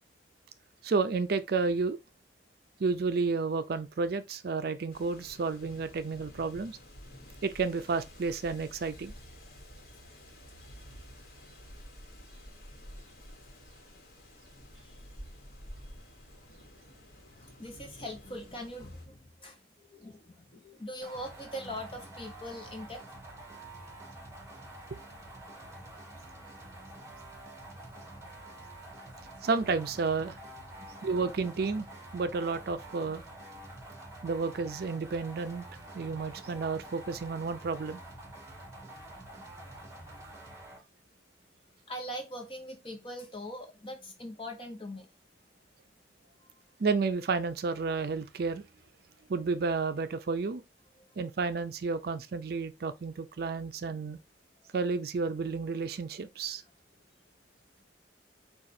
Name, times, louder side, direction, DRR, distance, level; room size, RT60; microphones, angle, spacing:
voice 1, 0.8-2.0 2.8-6.8 7.4-9.1 29.4-30.4 31.0-31.9 32.1-33.2 34.2-35.6 35.9-38.0 46.8-48.6 49.3-50.6 51.2-54.2 54.7-56.6, right 4 dB, 55° right, 0.4 m, -31 dB
sound 1, 4.9-19.0, equal, 50° left, 1.3 m, -51 dB
voice 2, 17.4-19.6 19.9-23.0 27.0-27.1 28.2-28.3 30.8-30.9 41.9-45.1 51.0-51.1, equal, 30° left, 0.8 m, -42 dB
sound 2, 21.0-40.8, right 1 dB, 15° right, 1.2 m, -47 dB
4.9 x 2.4 x 4.2 m
head